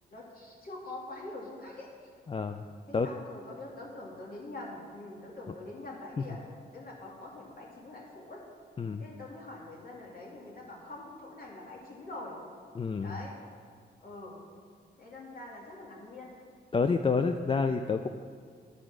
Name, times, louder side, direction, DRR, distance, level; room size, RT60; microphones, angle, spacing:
voice 1, 0.1-1.9 2.9-8.4 9.0-12.4 13.0-13.4 14.0-14.4 15.0-16.3, left 2 dB, 55° left, -3 dB, 2.7 m, -44 dB
voice 2, 2.3-2.7 2.9-3.1 8.8-9.0 12.8-13.2 16.7-18.1, left 4 dB, 30° left, 7 dB, 0.4 m, -28 dB
12.0 x 5.0 x 6.2 m, 2.1 s
cardioid pair, 75°, 18 cm